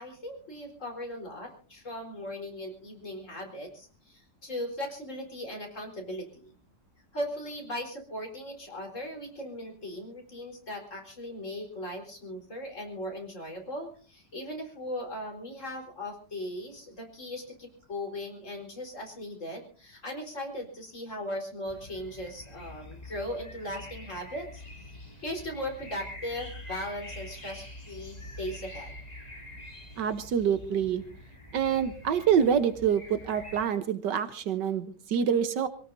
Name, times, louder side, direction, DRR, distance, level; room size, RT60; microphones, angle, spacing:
voice 1, 0.0-6.5 7.1-24.6 25.2-28.9, left 1 dB, 45° left, 2 dB, 4.7 m, -38 dB
sound 1, 21.7-33.7, left 1 dB, 20° left, 3.3 m, -45 dB
voice 2, 30.0-31.0 31.5-35.7, right 8 dB, 85° right, 10 dB, 1.7 m, -26 dB
26.0 x 18.0 x 2.7 m, 0.39 s
omnidirectional pair, 1.8 m